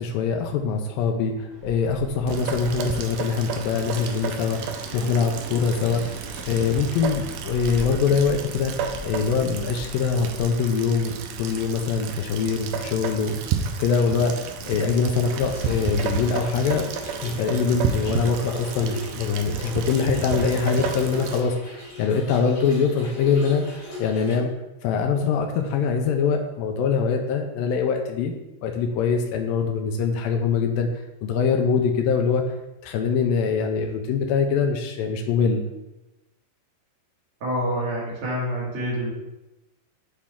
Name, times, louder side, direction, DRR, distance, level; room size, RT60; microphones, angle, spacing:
voice 1, 0.0-6.2 6.5-13.4 13.8-16.9 17.2-24.5 24.8-28.3 28.6-30.9 31.2-32.4 32.8-35.7, left 5 dB, 85° left, 4 dB, 2.0 m, -23 dB
sound 1, 1.5-10.4, equal, 65° right, 1.6 m, -40 dB
Rain, 2.3-21.4, right 7 dB, 80° right, 2.1 m, -32 dB
Trickle dribble / Fill (with liquid), 15.4-24.4, left 1 dB, 60° left, 3.7 m, -40 dB
voice 2, 37.4-39.1, equal, 40° right, -7 dB, 1.5 m, -27 dB
7.3 x 4.2 x 3.6 m, 0.99 s
omnidirectional pair, 4.5 m